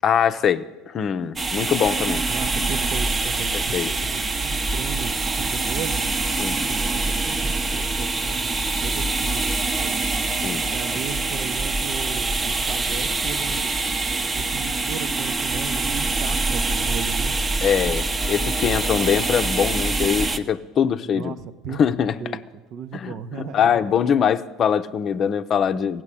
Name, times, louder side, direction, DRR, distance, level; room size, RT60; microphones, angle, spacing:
voice 1, 0.0-2.3 3.5-3.9 6.4-6.6 10.4-10.7 17.6-21.3 21.7-22.2 22.9-26.0, left 8 dB, 45° left, 10 dB, 0.7 m, -22 dB
sound 1, 1.4-20.4, right 3 dB, 25° right, 0.9 m, -25 dB
voice 2, 2.3-6.1 6.7-10.0 10.7-13.8 14.3-17.4 21.1-21.8 22.2-22.4 22.7-23.7, right 7 dB, 55° right, 10 dB, 0.8 m, -36 dB
15.5 x 7.6 x 9.8 m, 1.2 s
hypercardioid pair, 80°, 0 cm